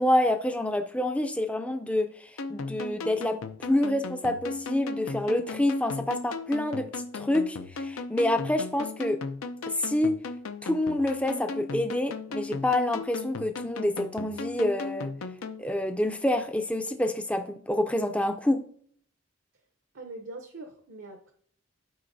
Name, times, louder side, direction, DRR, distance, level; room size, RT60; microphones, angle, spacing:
voice 1, 0.0-9.2 9.7-10.2 10.6-15.1 15.6-18.6, left 1 dB, 5° left, 7 dB, 0.4 m, -27 dB
sound 1, 2.4-15.6, left 3 dB, 85° left, 0.6 m, -37 dB
voice 2, 19.9-21.3, right 2 dB, 65° right, 4 dB, 0.7 m, -42 dB
11.5 x 5.3 x 2.6 m, 0.62 s
head